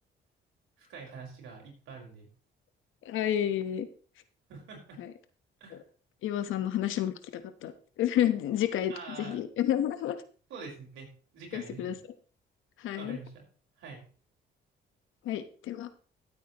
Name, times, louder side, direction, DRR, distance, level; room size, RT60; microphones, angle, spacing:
voice 1, 0.8-2.3 4.5-5.0 5.6-5.8 8.9-9.4 10.5-11.1 11.3-12.0 12.9-13.4 13.8-14.0, right 4 dB, 85° right, 0 dB, 5.0 m, -45 dB
voice 2, 3.0-3.9 5.0-5.1 6.2-7.7 8.0-8.9 9.2-10.2 11.5-11.9 12.8-13.2 15.2-15.9, left 11 dB, 85° left, 10 dB, 1.2 m, -30 dB
15.5 x 8.5 x 3.1 m, 0.39 s
cardioid pair, 90°, 20 cm